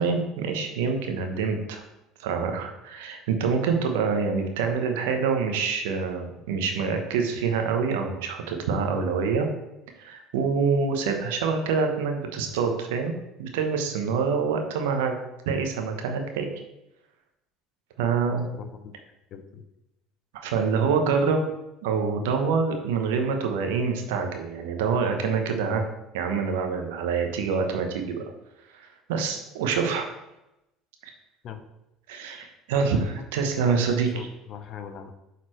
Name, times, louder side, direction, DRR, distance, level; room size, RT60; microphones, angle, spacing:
voice 1, 0.0-1.8 2.2-9.5 10.0-13.1 13.4-15.1 15.4-16.5 18.0-18.4 20.3-21.5 21.8-25.8 26.1-28.2 28.7-30.1 31.0-31.1 32.1-34.3, right 5 dB, 75° right, 4 dB, 1.0 m, -26 dB
voice 2, 18.5-18.9 19.3-19.6 31.4-31.6 33.2-33.3 33.7-35.1, left 7 dB, 50° left, 8 dB, 0.7 m, -41 dB
7.6 x 4.2 x 3.2 m, 0.91 s
hypercardioid pair, 70°, 0 cm